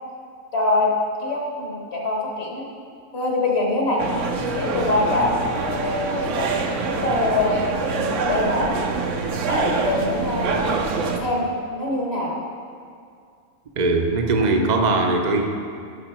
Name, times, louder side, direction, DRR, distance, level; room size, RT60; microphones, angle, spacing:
voice 1, 0.5-0.9 1.2-2.7 3.1-4.0 4.5-5.4 5.7-6.5 6.8-8.8 9.5-10.8 11.2-12.4, left 2 dB, 50° left, -2 dB, 1.6 m, -24 dB
sound 1, 4.0-11.2, right 4 dB, 65° right, 1.0 m, -25 dB
voice 2, 13.8-15.4, right 3 dB, 40° right, 3 dB, 0.7 m, -20 dB
11.5 x 5.7 x 4.4 m, 2.3 s
omnidirectional pair, 1.5 m